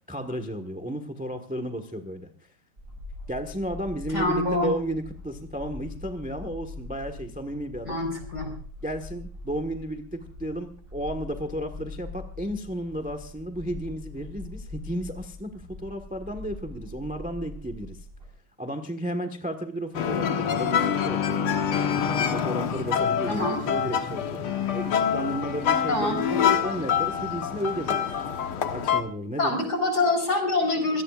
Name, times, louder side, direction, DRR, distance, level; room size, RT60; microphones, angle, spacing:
voice 1, 0.1-2.3 3.3-8.0 8.8-18.0 18.6-21.6 22.3-24.4 24.7-28.0 28.7-29.6, equal, 5° right, 7 dB, 1.1 m, -33 dB
sound 1, 2.8-18.3, left 2 dB, 25° right, 5.4 m, -42 dB
voice 2, 4.1-4.7 7.9-8.5 23.3-23.6 25.9-26.2 29.4-31.0, left 2 dB, 50° left, 6 dB, 5.3 m, -25 dB
sound 2, 19.9-29.0, left 8 dB, 85° left, 2.3 m, -26 dB
25.5 x 17.5 x 2.5 m, 0.43 s
omnidirectional pair, 2.3 m